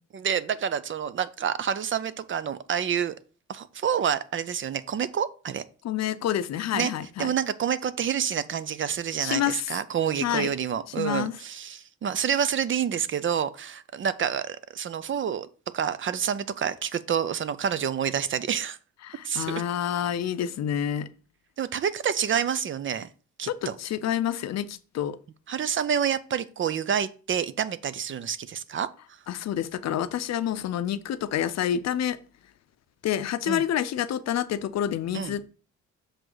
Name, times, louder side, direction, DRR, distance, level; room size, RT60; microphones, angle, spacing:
voice 1, 0.1-3.2 3.5-5.6 6.7-6.9 7.2-15.5 15.7-18.8 19.2-19.6 21.6-23.1 23.4-23.7 25.5-28.9 33.5-33.6 35.1-35.3, right 8 dB, 40° right, 0.5 m, -28 dB
voice 2, 5.8-7.3 9.2-9.7 10.2-10.5 11.0-11.3 19.0-21.1 23.5-25.2 29.3-32.2 33.0-35.5, left 10 dB, 60° left, 0.6 m, -28 dB
6.4 x 4.8 x 3.9 m
cardioid pair, 90°, 30 cm